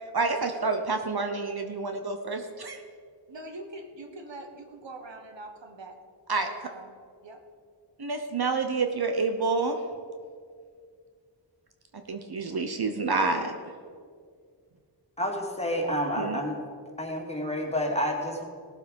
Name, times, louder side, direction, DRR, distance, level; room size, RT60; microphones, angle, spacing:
voice 1, 0.1-2.8 6.3-6.5 8.0-9.8 12.1-13.5 16.2-16.4, right 4 dB, 60° right, 6 dB, 0.9 m, -28 dB
voice 2, 3.3-6.0 6.4-7.0 7.2-7.4, right 2 dB, 80° right, 4 dB, 1.3 m, -43 dB
voice 3, 15.2-16.6 17.0-18.4, equal, 15° left, 0 dB, 2.4 m, -29 dB
17.5 x 7.6 x 5.3 m, 2.1 s
wide cardioid pair, 60°, 44 cm